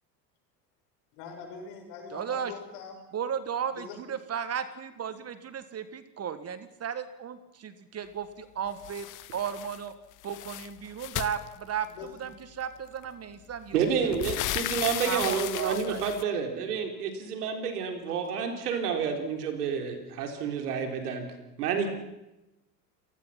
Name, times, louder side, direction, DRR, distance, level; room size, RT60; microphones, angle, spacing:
voice 1, 1.1-3.0 3.7-4.0 11.9-12.2, left 6 dB, 60° left, 2 dB, 6.9 m, -43 dB
voice 2, 2.1-2.5 3.1-9.9 10.2-14.1 15.0-16.0, right 8 dB, 30° right, 12 dB, 1.5 m, -35 dB
sound 1, 8.8-9.8 10.1-12.1 13.0-13.1 13.5-16.2, left 16 dB, 40° left, 1.0 m, -35 dB
voice 3, 13.7-21.3 21.6-21.9, right 6 dB, 70° right, 5 dB, 4.0 m, -29 dB
28.0 x 19.0 x 5.8 m, 0.96 s
hypercardioid pair, 80°, 48 cm